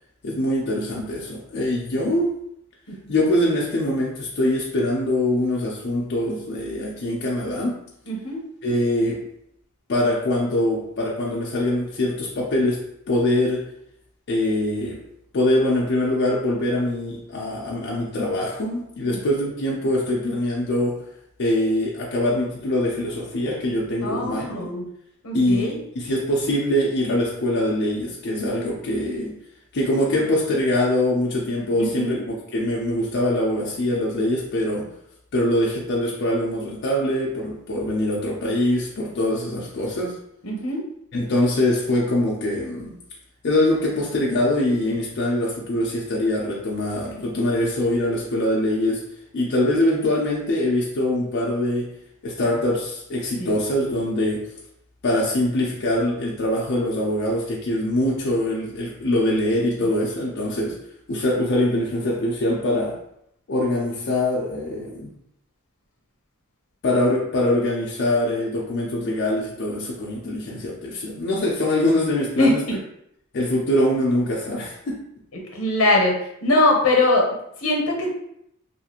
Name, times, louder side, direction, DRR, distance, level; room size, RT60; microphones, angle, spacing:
voice 1, 0.2-2.4 3.1-7.8 8.6-9.2 9.9-13.6 14.3-15.0 15.3-21.0 21.4-24.7 25.3-29.3 29.7-34.9 35.3-40.2 41.1-42.9 43.4-49.0 49.3-51.9 52.2-54.5 55.0-60.8 61.1-63.0 63.5-65.1 66.8-72.6 73.3-75.0, left 1 dB, 55° left, -4 dB, 0.5 m, -23 dB
voice 2, 8.1-8.4 19.1-19.2 24.0-24.8 25.2-25.8 31.9-32.2 40.4-40.8 53.4-53.5 72.4-72.8 75.5-77.3 77.6-78.1, left 2 dB, 85° left, 0 dB, 0.8 m, -21 dB
2.5 x 2.4 x 2.8 m, 0.74 s
head